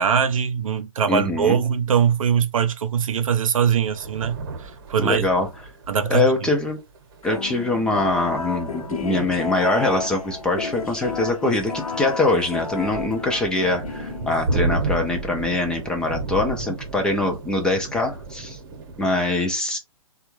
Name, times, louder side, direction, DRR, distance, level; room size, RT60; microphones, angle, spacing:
voice 1, 0.0-5.3 5.9-6.3, right 7 dB, 70° right, 0.6 m, -22 dB
voice 2, 1.1-1.6 5.0-5.5 6.1-6.8 7.2-18.6 19.0-19.8, left 2 dB, 5° left, 0.4 m, -23 dB
sound 1, 3.7-19.3, right 3 dB, 45° right, 0.9 m, -33 dB
sound 2, 7.2-14.6, left 4 dB, 85° left, 0.8 m, -32 dB
3.3 x 2.3 x 3.0 m
hypercardioid pair, 135°, 18 cm